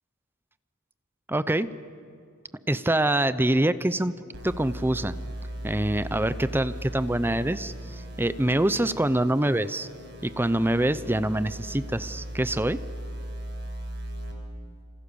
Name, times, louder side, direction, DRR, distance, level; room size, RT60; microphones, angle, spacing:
voice 1, 1.3-1.7 2.7-4.1 4.4-5.1 5.6-9.9 10.2-12.8, right 1 dB, 10° right, 14 dB, 0.6 m, -25 dB
sound 1, 4.3-14.3, right 1 dB, 55° right, 5.3 m, -38 dB
29.5 x 27.0 x 6.9 m, 2.5 s
head